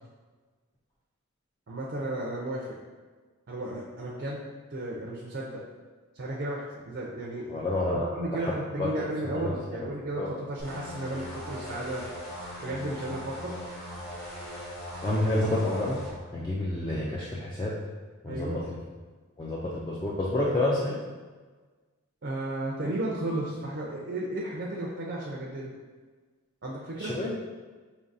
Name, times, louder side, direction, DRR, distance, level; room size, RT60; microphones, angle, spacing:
voice 1, 1.7-2.7 3.5-4.5 4.7-5.6 6.1-7.5 7.9-12.0 12.6-13.5 18.3-18.6 22.2-25.7 26.6-27.1, right 1 dB, 50° right, -3 dB, 0.5 m, -34 dB
voice 2, 7.5-8.1 8.3-8.5 8.8-9.0 9.3-9.9 10.2-10.3 15.0-16.0 16.3-17.7 18.2-18.8 19.4-21.0 27.0-27.3, left 1 dB, 20° left, -6 dB, 0.4 m, -29 dB
sound 1, 10.6-16.1, equal, 40° left, 1.0 m, -40 dB
5.2 x 2.8 x 2.6 m, 1.4 s
head